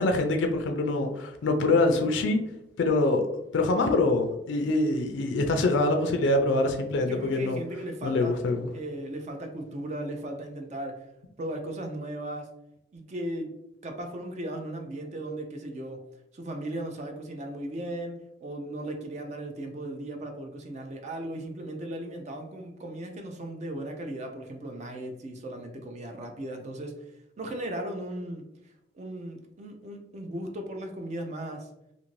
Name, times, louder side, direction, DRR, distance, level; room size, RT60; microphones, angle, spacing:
voice 1, 0.0-2.4 2.8-3.2 3.5-7.6 8.0-8.7, left 2 dB, 70° left, 4 dB, 0.4 m, -24 dB
voice 2, 7.1-8.4 8.7-11.0 11.4-12.5 12.9-13.5 13.8-16.0 16.3-27.0 27.4-28.5 28.9-31.7, right 1 dB, 35° right, 4 dB, 0.4 m, -36 dB
2.5 x 2.5 x 3.0 m, 0.85 s
head